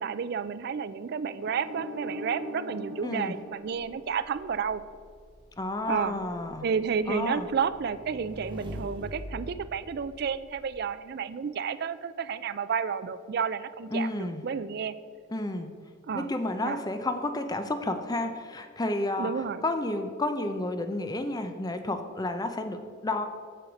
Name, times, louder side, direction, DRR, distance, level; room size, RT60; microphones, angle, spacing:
voice 1, 0.0-4.8 5.9-6.2 6.6-14.9 16.1-16.3 16.6-16.8 19.2-19.7, right 6 dB, 50° right, 13 dB, 0.4 m, -31 dB
sound 1, 1.5-4.5, equal, 80° right, 1.8 m, -39 dB
voice 2, 3.0-3.4 5.6-6.7 7.1-7.5 13.9-14.4 15.3-15.7 16.1-23.3, left 2 dB, 20° left, 7 dB, 0.6 m, -31 dB
Motorcycle / Engine, 3.7-10.8, equal, 25° right, 1.3 m, -44 dB
7.6 x 6.5 x 5.2 m, 2.1 s
head